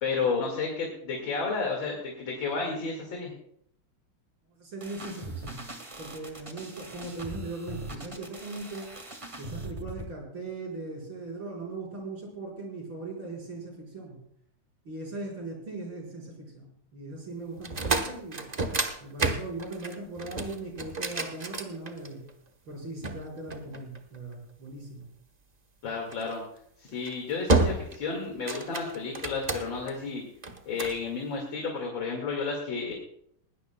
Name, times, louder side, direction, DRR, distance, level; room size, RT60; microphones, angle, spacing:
voice 1, 0.0-3.3 25.8-26.4 26.8-30.2 30.7-32.9, left 4 dB, 60° left, 0 dB, 2.7 m, -32 dB
voice 2, 4.6-5.6 6.0-8.9 9.4-14.2 14.9-16.7 16.9-18.5 19.0-22.3 22.7-25.0, right 2 dB, 65° right, -2 dB, 5.7 m, -39 dB
sound 1, 4.8-10.1, right 2 dB, 15° right, 1.5 m, -41 dB
sound 2, 17.6-22.3 23.0-24.3 26.1-26.4 26.9-27.1 27.5-28.0 28.3-29.9 30.4-31.0, right 3 dB, 30° right, 0.7 m, -30 dB
20.0 x 17.0 x 2.2 m, 0.70 s
omnidirectional pair, 2.4 m